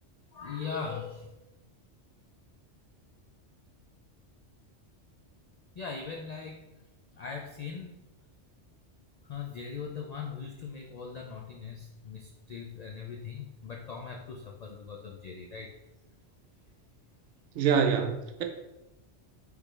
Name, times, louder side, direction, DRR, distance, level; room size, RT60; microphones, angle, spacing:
voice 1, 0.3-1.3 5.8-6.6 7.1-7.9 9.3-15.7, left 5 dB, 75° left, 1 dB, 0.3 m, -40 dB
voice 2, 17.6-18.4, right 7 dB, 80° right, 4 dB, 0.9 m, -25 dB
5.0 x 3.2 x 3.2 m, 0.97 s
omnidirectional pair, 1.2 m